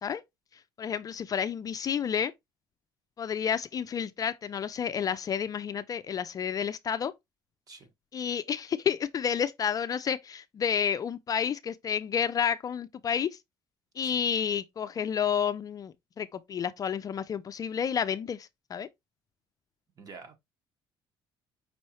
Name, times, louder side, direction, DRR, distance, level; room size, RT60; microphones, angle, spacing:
voice 1, 0.8-2.3 3.2-7.1 8.1-13.3 14.0-18.9, left 8 dB, 40° left, 0.4 m, -30 dB
voice 2, 20.0-20.4, right 4 dB, 40° right, 1.4 m, -47 dB
5.5 x 3.0 x 2.9 m
cardioid pair, 105°, 10 cm